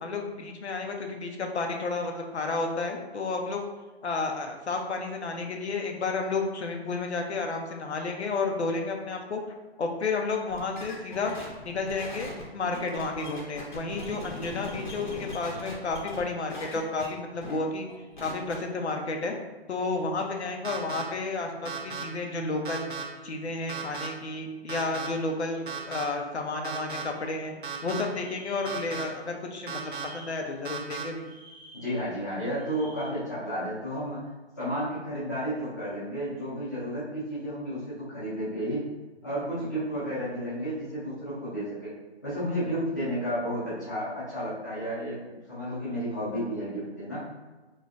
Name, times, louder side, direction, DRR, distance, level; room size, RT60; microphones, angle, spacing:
voice 1, 0.0-3.6 4.0-9.4 9.8-11.3 11.6-17.9 18.2-19.3 19.7-22.9 23.2-27.5 27.8-31.2, left 3 dB, 85° left, 3 dB, 0.8 m, -31 dB
sound 1, 10.5-16.2 16.5-17.1 17.4-17.6 17.9-18.5, left 1 dB, 45° left, 0.9 m, -40 dB
sound 2, 20.6-21.0 21.7-22.0 22.7-23.0 23.7-24.1 24.7-25.1 25.7-26.0 26.6-27.0 27.6-28.0 28.7-29.0 29.7-30.1 30.7-31.0, right 6 dB, 50° right, 0.5 m, -35 dB
sound 3, 28.1-29.2 29.5-30.6 31.1-33.1, right 1 dB, 10° right, 0.9 m, -51 dB
voice 2, 31.8-34.3 34.6-38.8 39.2-41.9 42.2-45.2 45.5-47.2, equal, 15° left, -11 dB, 0.9 m, -32 dB
3.7 x 3.1 x 2.5 m, 1.2 s
hypercardioid pair, 175°, 33 cm